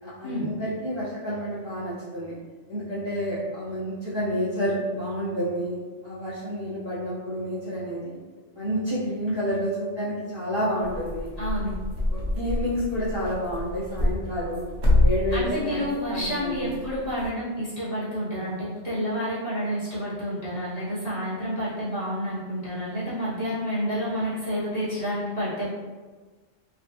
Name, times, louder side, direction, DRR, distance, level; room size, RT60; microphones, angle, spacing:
voice 1, 0.0-2.4 2.7-8.2 8.5-11.3 12.1-14.6 15.0-16.7, equal, 25° right, -13 dB, 1.0 m, -29 dB
sound 1, 10.8-17.3, left 1 dB, 80° right, 1.0 m, -27 dB
voice 2, 11.4-11.7 15.3-25.7, equal, 35° left, -12 dB, 1.2 m, -29 dB
3.2 x 2.4 x 2.7 m, 1.4 s
omnidirectional pair, 1.2 m